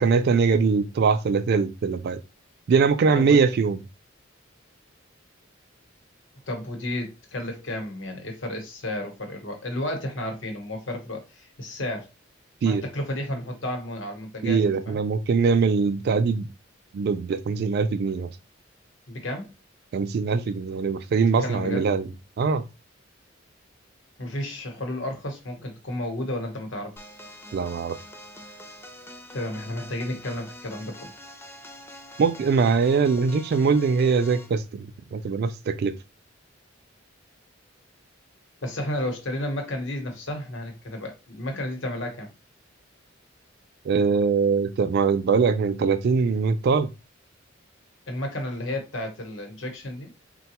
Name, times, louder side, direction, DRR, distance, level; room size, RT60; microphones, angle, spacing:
voice 1, 0.0-2.2 2.7-3.8 12.6-12.8 14.4-16.5 16.9-18.3 19.9-22.1 22.4-22.6 27.5-28.0 32.2-35.9 43.8-46.9, right 5 dB, 55° right, 0.3 m, -22 dB
voice 2, 6.5-12.1 12.6-15.0 19.1-19.5 21.4-21.8 24.2-27.1 29.3-31.1 38.6-42.3 48.1-50.1, left 1 dB, 70° left, 1.0 m, -32 dB
sound 1, 27.0-34.6, left 1 dB, 10° left, 0.4 m, -45 dB
3.9 x 2.2 x 2.8 m
head